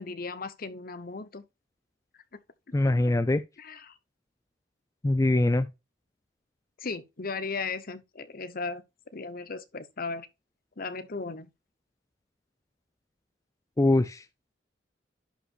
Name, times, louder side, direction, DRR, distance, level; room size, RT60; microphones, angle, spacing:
voice 1, 0.0-1.4 3.6-4.0 6.8-8.8 9.1-10.3 10.8-11.5, left 4 dB, 50° left, 0.9 m, -36 dB
voice 2, 2.7-3.4 5.0-5.7 13.8-14.2, left 2 dB, 20° left, 0.4 m, -23 dB
11.0 x 5.1 x 2.5 m
head